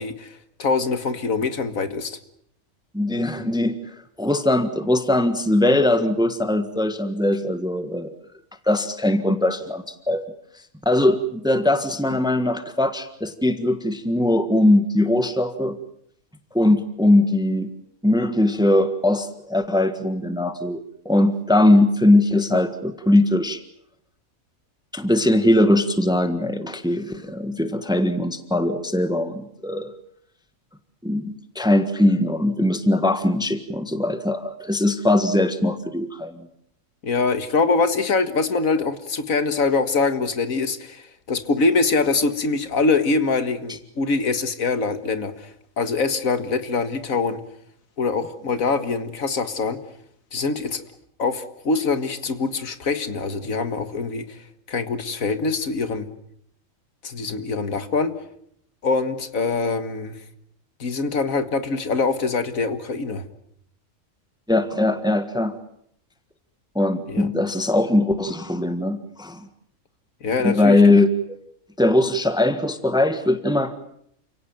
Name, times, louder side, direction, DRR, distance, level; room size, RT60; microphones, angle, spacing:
voice 1, 0.0-2.2 37.0-45.5 45.8-47.4 48.0-49.8 50.3-50.8 51.2-54.4 54.7-56.1 57.0-58.1 58.8-60.2 60.8-63.2 67.1-67.3 70.2-70.9, left 4 dB, 90° left, 10 dB, 2.1 m, -24 dB
voice 2, 2.9-3.8 4.2-8.1 8.7-10.2 10.8-15.8 16.5-17.7 18.0-23.6 24.9-29.9 31.0-36.5 64.5-65.5 66.7-69.5 70.4-71.1 71.8-73.7, left 1 dB, 5° right, 10 dB, 1.5 m, -20 dB
29.0 x 17.5 x 9.2 m, 0.72 s
omnidirectional pair, 1.4 m